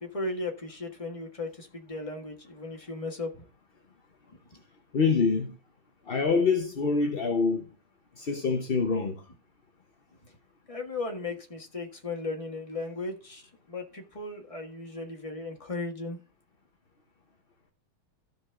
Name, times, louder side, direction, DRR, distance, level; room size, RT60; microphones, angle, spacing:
voice 1, 0.0-3.4 4.5-4.6 10.2-10.3 10.7-16.2, left 2 dB, 20° left, 1.4 m, -36 dB
voice 2, 4.9-5.5 6.1-7.6 8.2-9.2, left 4 dB, 50° left, 0.7 m, -25 dB
15.0 x 5.3 x 3.7 m
omnidirectional pair, 2.3 m